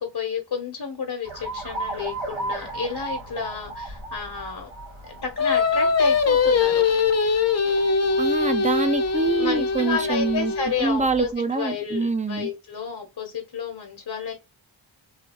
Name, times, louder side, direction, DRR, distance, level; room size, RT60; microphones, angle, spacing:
voice 1, 0.0-4.7 5.1-6.8 9.2-14.3, left 6 dB, 55° left, 1.0 m, -31 dB
Alarm, 1.2-11.3, right 2 dB, 80° right, 1.6 m, -37 dB
Singing, 5.4-10.8, left 5 dB, 35° left, 0.5 m, -22 dB
voice 2, 8.2-10.5 10.8-12.5, right 3 dB, 15° right, 0.6 m, -25 dB
3.2 x 2.7 x 2.9 m
cardioid pair, 45°, 47 cm